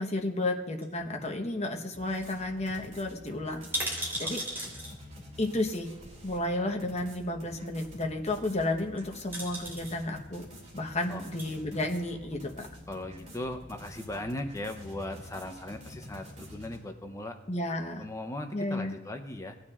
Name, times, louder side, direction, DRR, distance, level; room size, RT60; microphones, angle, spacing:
voice 1, 0.0-3.6 4.2-4.4 5.4-5.9 6.2-10.4 10.7-12.7 17.5-18.0 18.5-18.9, left 1 dB, 35° left, 3 dB, 1.1 m, -32 dB
sound 1, 0.8-1.6 1.9-2.0 2.2-2.4 2.7-2.8 3.5-4.9 6.1-6.2 8.8-9.0 9.3-10.0 11.1-11.5 12.1-12.8 13.1-13.2, right 1 dB, 10° right, 3.7 m, -36 dB
sound 2, 1.9-16.8, left 1 dB, 35° right, 2.5 m, -48 dB
voice 2, 4.6-4.9 11.1-11.2 11.5-11.6 12.9-17.4 18.0-19.6, left 1 dB, 15° left, 6 dB, 0.7 m, -38 dB
17.5 x 9.4 x 2.4 m, 1.2 s
head